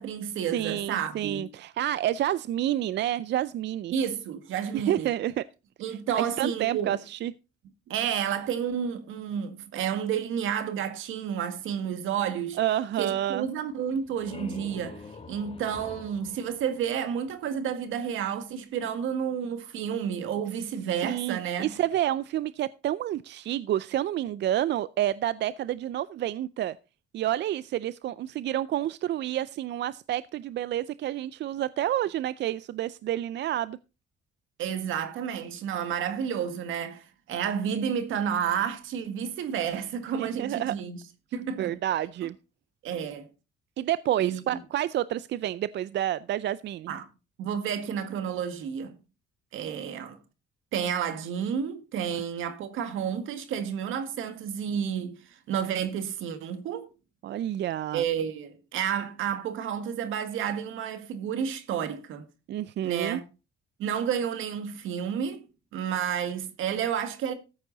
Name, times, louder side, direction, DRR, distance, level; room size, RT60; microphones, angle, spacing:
voice 1, 0.0-1.5 3.9-5.1 5.8-7.0 7.9-12.6 13.0-21.7 34.6-41.0 41.3-41.8 42.8-43.3 44.2-44.6 46.9-47.1 47.4-49.0 49.5-50.2 50.7-56.9 57.9-62.3 62.8-63.2 63.8-65.5 65.7-67.3, right 8 dB, 85° right, 1.8 m, -31 dB
voice 2, 0.5-3.9 4.7-5.4 6.1-7.3 12.6-13.5 21.0-26.7 27.1-33.8 40.2-40.7 41.6-42.3 43.8-46.9 57.2-58.0 62.5-63.2, right 12 dB, 60° right, 0.4 m, -29 dB
sound 1, 13.9-17.5, left 4 dB, 30° left, 1.7 m, -45 dB
14.0 x 8.2 x 4.0 m
cardioid pair, 90°, 20 cm